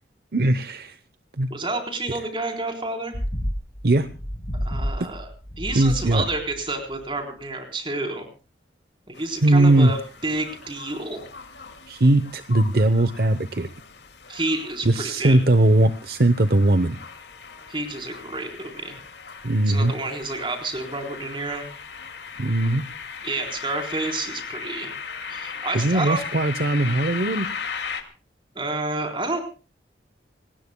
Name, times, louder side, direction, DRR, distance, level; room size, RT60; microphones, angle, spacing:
voice 1, 0.3-1.0 1.4-1.5 3.8-4.1 5.7-6.2 9.4-9.9 11.9-13.7 14.8-17.0 19.4-19.9 22.4-22.8 25.7-27.5, right 1 dB, 55° right, 12 dB, 0.8 m, -19 dB
voice 2, 1.5-3.2 4.6-5.3 5.6-8.3 9.1-11.2 14.3-15.4 17.7-19.0 19.7-21.7 23.2-25.0 25.3-26.2 28.6-29.4, right 2 dB, 30° right, 4 dB, 3.9 m, -29 dB
sound 1, 3.1-6.6 6.9-7.0, equal, 35° left, 4.6 m, -30 dB
sound 2, 9.1-28.0, left 6 dB, 85° left, 2.3 m, -38 dB
26.0 x 19.5 x 2.2 m, 0.34 s
head